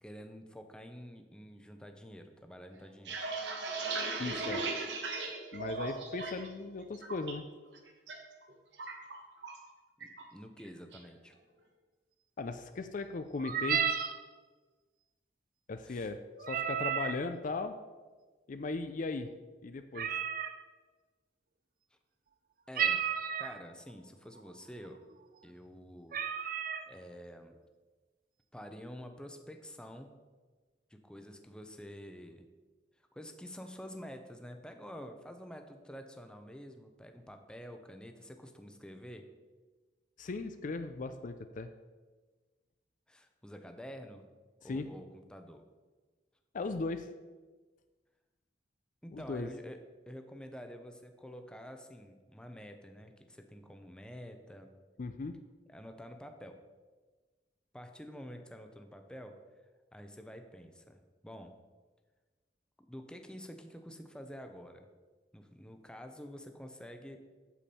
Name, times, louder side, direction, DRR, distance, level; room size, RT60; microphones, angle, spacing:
voice 1, 0.0-3.2 10.0-11.4 15.8-16.1 22.7-23.1 23.4-25.0 25.4-26.6 26.9-27.6 28.5-30.1 30.9-32.5 33.1-39.2 43.1-44.2 44.6-45.6 49.0-49.8 50.1-54.7 55.7-56.6 57.7-59.4 59.9-61.5 62.9-64.9 65.3-67.2, equal, 5° left, 6 dB, 0.6 m, -48 dB
sound 1, 2.8-6.5 6.8-7.3 7.7-8.2 8.4-9.7 10.0-10.2 10.6-11.1, right 3 dB, 85° right, 1.3 m, -37 dB
voice 2, 4.2-4.6 5.5-7.5 12.4-13.8 15.7-16.2 16.5-17.7 18.5-19.3 19.6-20.1 40.2-41.7 44.6-44.9 46.5-47.1 49.1-49.5 55.0-55.4, left 3 dB, 50° left, 9 dB, 0.4 m, -37 dB
sound 2, 13.4-14.2 16.4-17.2 19.9-20.6 22.7-23.6 24.4-24.5 24.8-25.1 25.7-25.8 26.1-26.9, right 8 dB, 55° right, 0.5 m, -32 dB
8.3 x 7.1 x 4.2 m, 1.3 s
head